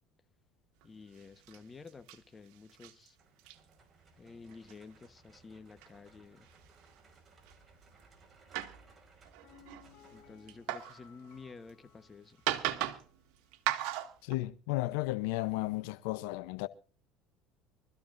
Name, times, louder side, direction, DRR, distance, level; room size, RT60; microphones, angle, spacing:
voice 1, 0.8-3.2 4.2-6.5 10.1-12.4, left 4 dB, 20° left, 1.2 m, -51 dB
sound 1, 0.8-0.9 1.1-1.6 1.9-2.2 2.5-3.1 3.4-3.6 4.5-4.8 5.8-5.9 6.4-7.0 7.5-7.6 8.0-8.2 8.5-11.7 12.3-13.2 13.5-14.3, right 13 dB, 75° right, 1.8 m, -37 dB
sound 2, 3.2-10.8, right 3 dB, 25° right, 5.4 m, -63 dB
Piano, 9.4-13.2 13.5-13.6, left 10 dB, 60° left, 7.6 m, -61 dB
voice 2, 14.2-16.7, left 19 dB, 80° left, 0.7 m, -34 dB
24.5 x 14.0 x 2.6 m
supercardioid pair, 115°, 0 cm